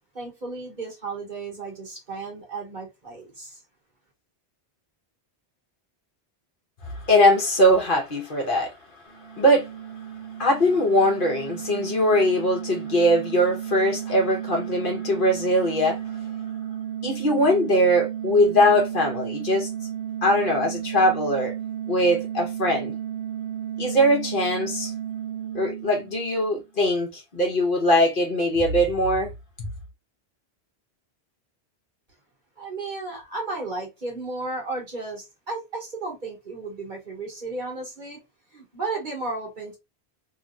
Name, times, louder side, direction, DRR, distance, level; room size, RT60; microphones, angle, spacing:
voice 1, 0.1-3.6 32.6-38.2 38.5-39.8, right 3 dB, 45° right, 1.3 m, -34 dB
voice 2, 6.8-8.8 9.2-9.7 10.4-16.2 17.0-19.7 20.2-21.5 21.9-22.9 23.8-24.9 25.5-29.3 29.6-29.7, equal, 55° left, 1.0 m, -21 dB
sound 1, 9.1-26.6, right 10 dB, 75° right, 1.2 m, -33 dB
2.9 x 2.8 x 2.2 m
omnidirectional pair, 1.1 m